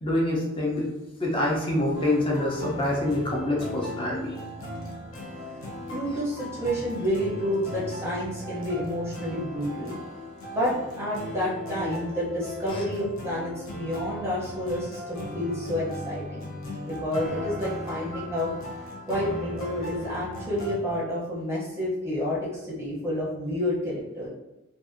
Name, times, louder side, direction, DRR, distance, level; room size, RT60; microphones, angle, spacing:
voice 1, 0.0-0.9 1.2-4.4 12.7-12.8, left 1 dB, 25° left, -2 dB, 0.6 m, -26 dB
sound 1, 1.9-20.8, left 1 dB, 70° left, 0.7 m, -37 dB
voice 2, 5.9-10.0 10.5-16.5 16.8-18.5 19.1-24.3, left 1 dB, 10° right, -7 dB, 0.7 m, -29 dB
2.6 x 2.5 x 2.5 m, 1.0 s
head